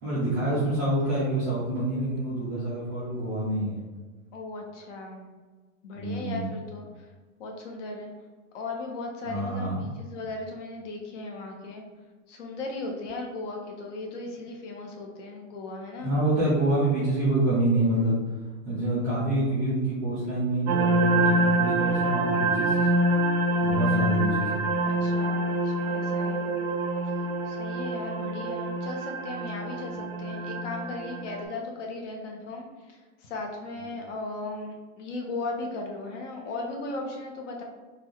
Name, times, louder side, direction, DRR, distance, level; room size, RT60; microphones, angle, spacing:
voice 1, 0.0-3.8 6.0-6.5 9.3-9.9 16.0-18.2 18.6-22.9 23.6-24.6, right 1 dB, 10° right, -12 dB, 0.3 m, -27 dB
voice 2, 4.3-5.3 5.8-7.1 7.4-8.1 8.5-11.8 12.3-16.1 24.8-26.5 27.4-37.6, left 2 dB, 60° left, 2 dB, 0.9 m, -37 dB
sound 1, 20.7-31.4, right 1 dB, 90° right, 0.7 m, -26 dB
4.1 x 2.3 x 3.1 m, 1.3 s
supercardioid pair, 160°, 41 cm